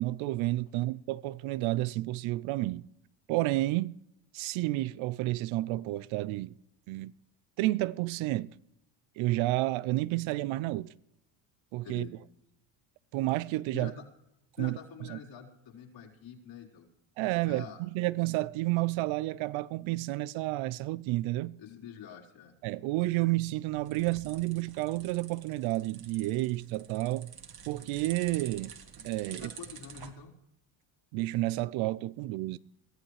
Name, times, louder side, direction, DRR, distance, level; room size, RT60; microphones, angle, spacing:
voice 1, 0.0-2.8 3.3-3.9 4.3-6.5 6.9-7.1 7.6-8.5 9.2-10.9 11.7-12.1 13.1-13.9 14.6-14.8 15.1-15.2 17.2-21.6 22.6-27.3 27.7-28.7 29.0-29.5 31.1-32.6, right 18 dB, 70° right, 0.7 m, -30 dB
voice 2, 11.8-12.1 13.7-14.0 14.6-16.9 17.4-17.8 21.6-22.6 29.3-30.3, left 7 dB, 65° left, 4.2 m, -46 dB
sound 1, 23.3-30.1, right 7 dB, 45° right, 2.1 m, -48 dB
22.5 x 14.5 x 3.3 m
supercardioid pair, 95°, 50 cm